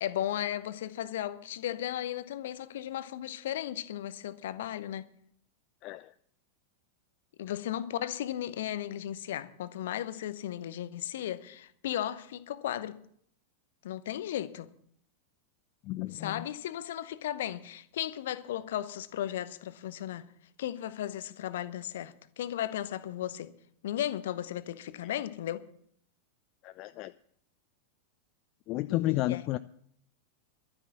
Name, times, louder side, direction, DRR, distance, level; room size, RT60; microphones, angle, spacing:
voice 1, 0.0-5.1 7.4-12.9 13.8-14.7 16.1-20.3 20.6-23.5 23.8-25.6 28.9-29.4, left 11 dB, 55° left, 1.0 m, -35 dB
voice 2, 5.8-6.1 15.8-16.5 26.6-27.1 28.7-29.6, left 16 dB, 40° left, 0.4 m, -32 dB
12.0 x 9.9 x 7.4 m
figure-of-eight pair, 90°, 0 cm